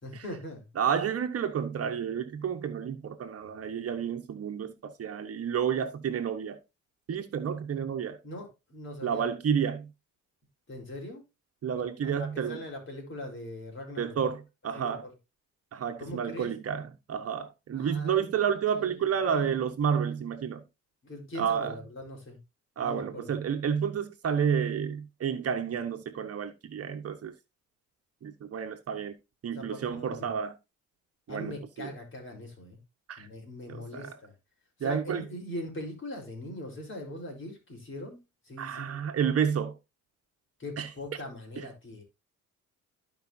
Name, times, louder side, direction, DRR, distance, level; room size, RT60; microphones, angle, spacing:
voice 1, 0.0-0.7 8.2-9.3 10.7-11.2 12.0-14.2 14.7-15.1 16.0-16.5 17.7-18.2 18.7-19.7 21.0-22.4 22.8-23.3 29.6-30.3 31.3-32.8 33.2-34.3 34.8-38.2 38.4-39.3 40.6-42.0, left 1 dB, 40° left, 4.3 m, -41 dB
voice 2, 0.8-6.6 7.1-8.2 9.0-9.9 11.6-12.6 14.0-15.1 15.7-20.6 21.3-21.8 22.8-27.3 28.2-29.2 29.4-30.6 31.3-31.9 33.1-33.3 33.7-34.2 34.8-35.3 38.6-39.7 40.8-40.9 41.6-41.7, right 7 dB, 50° right, 1.2 m, -30 dB
14.5 x 5.2 x 2.7 m
cardioid pair, 90°, 30 cm